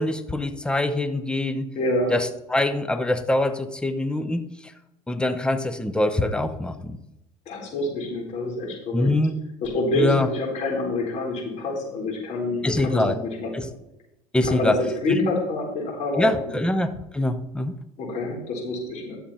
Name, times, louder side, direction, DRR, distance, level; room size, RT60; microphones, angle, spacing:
voice 1, 0.0-1.7 2.1-4.7 5.1-7.0 8.9-9.4 9.9-10.3 12.6-13.2 13.5-13.7 14.3-14.8 15.1-15.2 16.2-17.7, left 1 dB, 5° left, 10 dB, 0.8 m, -24 dB
voice 2, 1.7-2.1 7.5-9.1 9.6-13.0 13.4-13.7 14.5-16.3 18.0-19.2, left 2 dB, 55° left, -3 dB, 4.5 m, -27 dB
11.5 x 7.0 x 4.4 m, 0.89 s
supercardioid pair, 100°, 14 cm